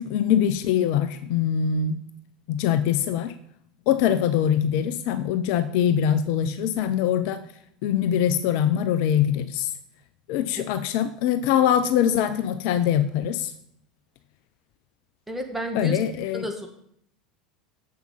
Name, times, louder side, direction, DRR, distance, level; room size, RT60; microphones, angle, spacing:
voice 1, 0.0-2.0 2.5-3.4 3.9-7.4 7.8-9.7 10.3-13.5 15.7-16.4, left 9 dB, 55° left, 11 dB, 0.5 m, -23 dB
voice 2, 15.3-16.0 16.3-16.7, equal, 5° right, 2 dB, 1.8 m, -31 dB
7.4 x 5.8 x 5.7 m, 0.70 s
figure-of-eight pair, 75°, 4 cm